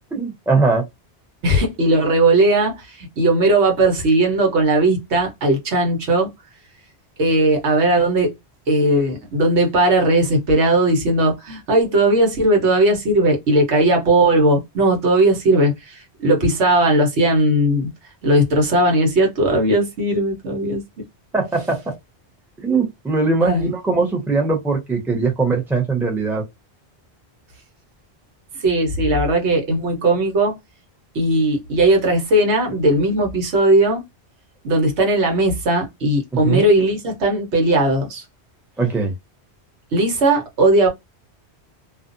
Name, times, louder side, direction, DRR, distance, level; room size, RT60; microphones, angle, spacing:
voice 1, 0.1-0.8 21.3-22.0 22.6-26.5 36.4-36.7 38.8-39.1, right 3 dB, 5° right, 0.6 m, -20 dB
voice 2, 1.4-6.3 7.2-8.3 8.7-17.9 18.2-20.8 23.4-23.7 28.5-30.6 31.1-34.0 34.6-38.2 39.9-40.9, right 1 dB, 85° right, 1.3 m, -17 dB
2.5 x 2.4 x 2.5 m
omnidirectional pair, 1.1 m